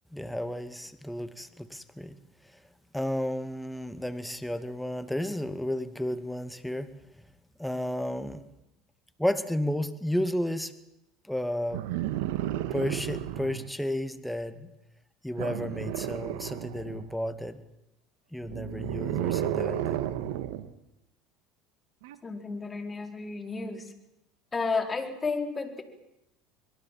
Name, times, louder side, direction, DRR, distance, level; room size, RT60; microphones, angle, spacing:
voice 1, 0.1-2.2 2.9-6.9 7.6-8.4 9.2-10.7 11.2-11.9 12.7-14.7 15.2-17.6 18.3-20.0, left 1 dB, 5° left, 11 dB, 2.2 m, -32 dB
sound 1, 11.7-13.7 15.4-17.1 18.4-20.7 22.0-22.2, right 13 dB, 70° right, 1.6 m, -32 dB
voice 2, 22.2-23.9 24.5-25.8, left 4 dB, 25° left, 6 dB, 4.4 m, -32 dB
25.0 x 22.0 x 7.5 m, 0.85 s
hypercardioid pair, 80°, 0 cm